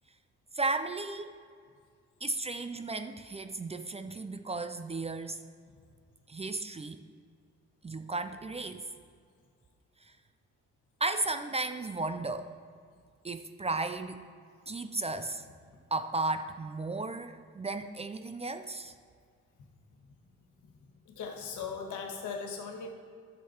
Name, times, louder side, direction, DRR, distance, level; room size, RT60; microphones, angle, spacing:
voice 1, 0.5-1.4 2.2-5.4 6.3-7.0 7.8-8.8 10.0-10.1 11.0-12.5 13.2-14.2 14.7-15.4 15.9-18.9, right 3 dB, 20° right, 9 dB, 0.4 m, -34 dB
voice 2, 21.1-22.9, left 5 dB, 80° left, 2 dB, 1.7 m, -38 dB
11.0 x 6.7 x 4.5 m, 2.2 s
cardioid pair, 90°, 30 cm